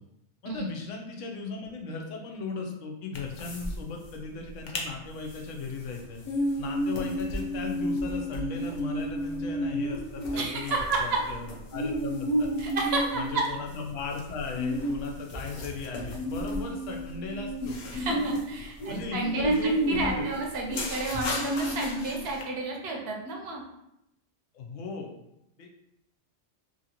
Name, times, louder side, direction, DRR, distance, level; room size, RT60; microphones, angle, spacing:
voice 1, 0.4-6.2 6.6-12.5 13.1-18.2 18.9-20.3 24.5-25.1 25.6-25.7, left 4 dB, 85° left, 2 dB, 1.0 m, -37 dB
sound 1, 3.1-3.8 4.0-4.1 4.5-4.9 5.3-22.4, equal, 55° left, 0.5 m, -31 dB
voice 2, 10.3-11.2 12.6-13.2 17.9-23.6, right 3 dB, 65° right, 0 dB, 0.8 m, -31 dB
2.8 x 2.6 x 2.8 m, 0.84 s
omnidirectional pair, 1.2 m